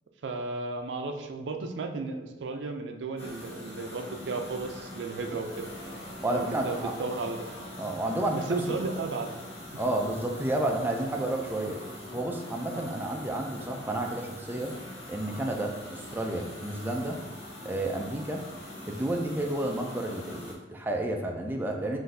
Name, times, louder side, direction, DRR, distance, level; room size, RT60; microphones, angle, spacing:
voice 1, 0.2-5.7 6.3-7.5 8.3-9.3 9.7-9.8 12.7-12.9, right 3 dB, 80° right, 5 dB, 0.4 m, -34 dB
sound 1, 3.2-20.5, left 1 dB, 35° left, 1.1 m, -43 dB
voice 2, 6.2-6.9 7.8-8.8 9.8-11.8 12.1-14.8 15.1-17.2 17.6-18.4 18.9-22.0, right 1 dB, 10° right, 2 dB, 0.3 m, -31 dB
5.7 x 2.5 x 2.6 m, 1.1 s
head